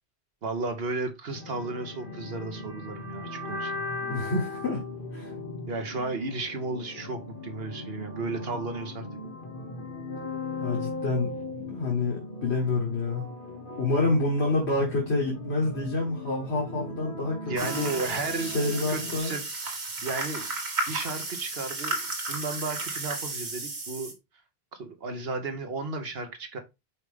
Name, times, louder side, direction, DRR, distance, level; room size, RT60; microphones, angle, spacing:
voice 1, 0.4-3.8 5.7-9.1 17.5-18.5 18.9-20.5 20.9-22.0 22.3-24.1 24.8-26.6, right 3 dB, 70° right, 1.4 m, -34 dB
sound 1, 1.3-19.2, left 2 dB, 55° left, 1.4 m, -38 dB
voice 2, 4.0-4.8 5.1-5.3 10.6-11.3 11.7-13.2 13.8-17.9 18.4-19.4, left 2 dB, 85° left, 1.9 m, -28 dB
sound 2, 17.6-24.1, right 3 dB, 85° right, 2.0 m, -33 dB
5.6 x 4.8 x 3.6 m
omnidirectional pair, 1.1 m